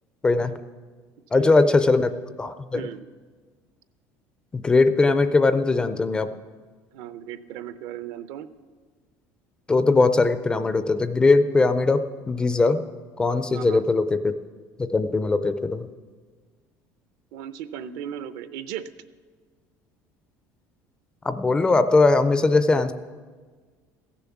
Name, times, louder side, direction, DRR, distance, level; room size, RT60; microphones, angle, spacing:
voice 1, 0.2-0.6 1.3-2.9 4.5-6.3 9.7-12.8 13.2-14.3 14.8-15.9 21.2-22.9, left 3 dB, 10° left, 11 dB, 0.4 m, -20 dB
voice 2, 1.3-1.8 2.7-3.1 6.9-8.5 13.5-13.8 17.3-18.9, right 10 dB, 65° right, 13 dB, 0.6 m, -36 dB
15.5 x 7.0 x 7.1 m, 1.5 s
cardioid pair, 170°, 7 cm